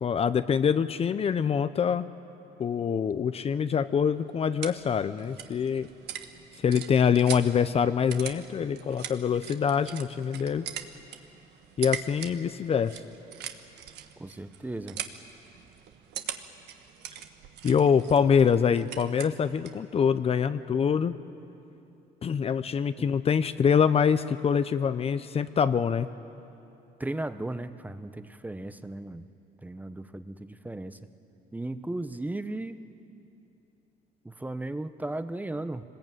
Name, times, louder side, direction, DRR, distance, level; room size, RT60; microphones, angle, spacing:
voice 1, 0.0-2.1 2.6-5.9 6.6-10.7 11.8-12.9 17.6-21.1 22.2-26.1, left 7 dB, 35° left, 12 dB, 0.7 m, -25 dB
sound 1, 4.0-19.9, right 10 dB, 80° right, 1.4 m, -42 dB
voice 2, 14.2-15.0 23.0-23.1 27.0-29.3 29.6-31.0 31.5-32.8 34.2-35.8, right 2 dB, 10° right, 11 dB, 0.8 m, -36 dB
23.5 x 20.5 x 9.1 m, 2.8 s
cardioid pair, 110°, 17 cm